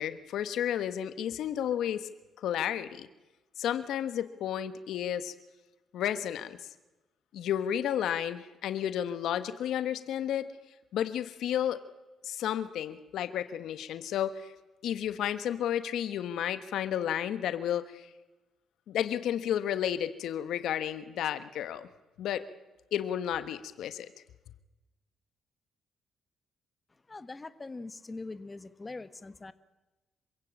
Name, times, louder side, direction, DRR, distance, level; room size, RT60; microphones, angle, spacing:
voice 1, 0.0-2.1 2.4-3.1 3.6-5.3 5.9-6.6 7.3-10.5 10.9-11.8 12.2-14.5 14.8-18.1 18.9-21.9 22.2-22.4 22.9-24.1, left 10 dB, 80° left, 12 dB, 1.3 m, -32 dB
voice 2, 26.9-29.5, left 3 dB, 25° left, 13 dB, 1.2 m, -42 dB
26.5 x 16.0 x 8.7 m, 1.1 s
cardioid pair, 90°, 0 cm